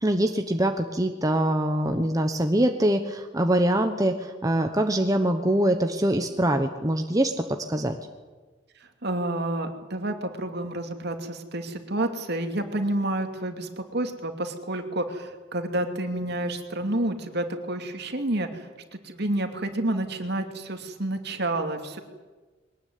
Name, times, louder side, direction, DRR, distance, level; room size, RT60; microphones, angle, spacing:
voice 1, 0.0-7.3 7.7-8.0, right 1 dB, 15° right, 5 dB, 1.2 m, -23 dB
voice 2, 9.0-22.0, right 1 dB, 55° right, 6 dB, 2.7 m, -29 dB
22.0 x 19.5 x 9.6 m, 1.3 s
head